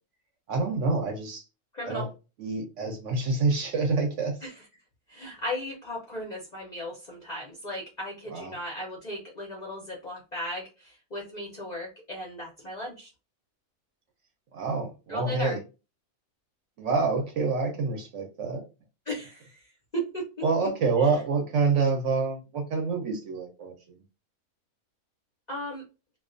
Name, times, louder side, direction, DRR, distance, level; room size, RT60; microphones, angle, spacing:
voice 1, 0.5-1.4 1.9-2.1 2.4-4.4 8.3-8.5 14.5-15.6 16.8-18.6 20.4-23.7, right 4 dB, 65° right, 0.8 m, -27 dB
voice 2, 1.7-2.1 4.4-4.7 5.1-13.1 15.1-15.6 19.1-20.3 20.6-20.7 21.0-21.2 25.5-25.9, equal, 45° left, 0.5 m, -36 dB
2.3 x 2.2 x 2.4 m
omnidirectional pair, 1.6 m